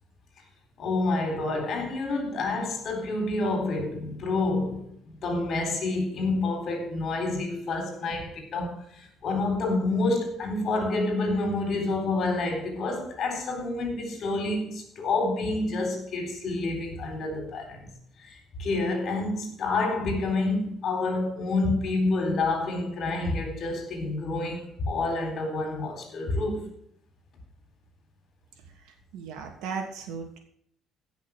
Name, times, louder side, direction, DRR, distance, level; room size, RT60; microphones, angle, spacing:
voice 1, 0.8-17.8 18.6-26.7, left 2 dB, 40° left, 3.9 m, -28 dB
voice 2, 28.8-30.4, right 5 dB, 90° right, 2.7 m, -36 dB
16.5 x 6.2 x 6.6 m
cardioid pair, 175°, 0 cm